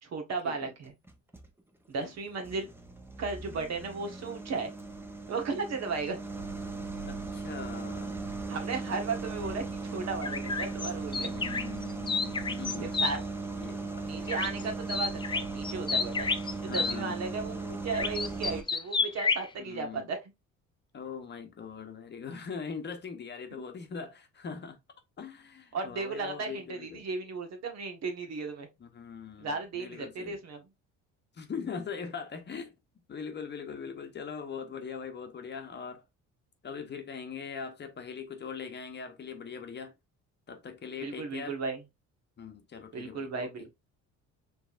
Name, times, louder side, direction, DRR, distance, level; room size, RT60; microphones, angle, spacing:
voice 1, 0.0-0.9 1.9-2.7 3.2-4.7 5.3-6.3 8.5-9.6 9.9-11.3 12.8-13.2 14.0-16.3 16.6-20.2 23.5-23.6 25.7-28.7 29.4-30.6 41.0-41.8 42.9-43.7, right 4 dB, 55° right, 1.4 m, -35 dB
sound 1, 0.8-1.5 2.0-18.6, right 3 dB, 5° right, 0.8 m, -38 dB
voice 2, 7.0-8.2 11.1-12.9 13.6-14.7 16.6-17.2 19.6-20.1 20.9-24.8 25.2-27.0 28.8-30.4 31.3-32.7 33.1-36.0 36.6-39.9 40.5-41.6 42.4-43.7, left 6 dB, 35° left, 1.0 m, -41 dB
sound 2, 10.2-13.1 14.3-14.6 14.9-17.0 17.9-19.5, left 4 dB, 15° left, 0.4 m, -30 dB
5.1 x 3.4 x 2.5 m
cardioid pair, 105°, 31 cm